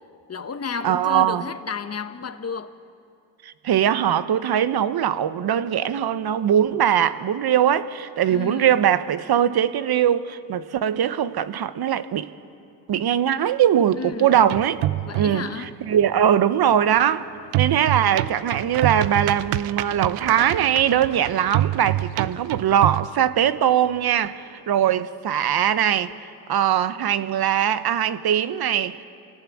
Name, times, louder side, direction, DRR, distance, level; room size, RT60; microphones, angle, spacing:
voice 1, 0.3-2.7 8.3-8.7 14.0-14.4 15.0-15.7, left 5 dB, 30° left, 1.5 m, -32 dB
voice 2, 0.8-1.4 3.4-12.3 12.9-14.8 15.1-15.5 15.8-17.3 17.5-26.1 26.5-29.0, right 10 dB, 50° right, 1.2 m, -21 dB
sound 1, 14.4-15.6 17.5-23.1, right 15 dB, 85° right, 0.7 m, -26 dB
27.5 x 17.5 x 8.7 m
supercardioid pair, 75°, 48 cm